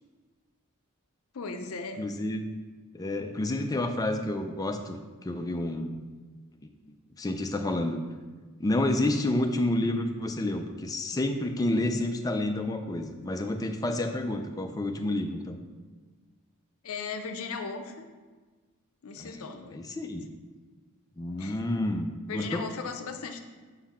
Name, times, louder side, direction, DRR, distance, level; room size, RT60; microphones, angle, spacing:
voice 1, 1.3-2.1 16.8-18.1 19.0-19.8 21.4-21.7 22.3-23.4, left 4 dB, 70° left, 6 dB, 0.5 m, -37 dB
voice 2, 2.0-2.5 2.9-6.0 7.2-8.0 8.6-15.6 19.2-19.4 19.7-20.3 21.2-22.6, left 1 dB, 15° left, 5 dB, 0.3 m, -29 dB
5.9 x 4.0 x 4.2 m, 1.4 s
head